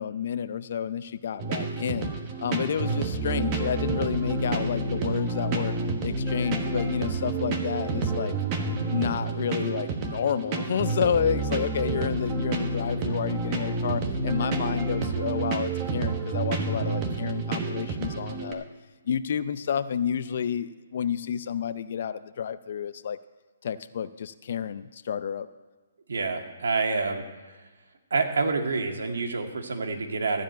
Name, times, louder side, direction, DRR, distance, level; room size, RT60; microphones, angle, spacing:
voice 1, 0.0-2.1 2.4-5.7 6.0-8.3 8.9-18.6 19.0-23.2 23.6-25.5, left 8 dB, 55° left, 14 dB, 0.6 m, -30 dB
sound 1, 1.4-18.5, right 3 dB, 30° right, 1.3 m, -29 dB
voice 2, 26.1-27.2 27.5-27.6 28.1-30.4, right 4 dB, 80° right, 4 dB, 1.9 m, -27 dB
14.0 x 5.0 x 9.1 m, 1.3 s
hypercardioid pair, 155°, 0 cm